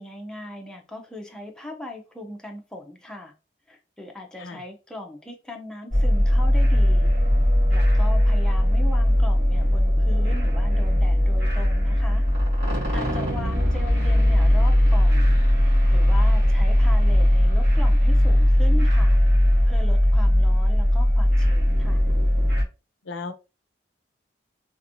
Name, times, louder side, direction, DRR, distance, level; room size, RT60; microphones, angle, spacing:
voice 1, 0.0-3.3 3.7-7.1 7.7-12.2 12.9-15.3 15.9-19.2 19.7-22.0, left 1 dB, 5° left, 0.6 m, -39 dB
sound 1, 5.9-22.6, left 1 dB, 65° right, 1.8 m, -19 dB
voice 2, 13.3-13.7 23.0-23.3, left 3 dB, 85° left, 0.5 m, -36 dB
3.5 x 2.9 x 2.6 m
head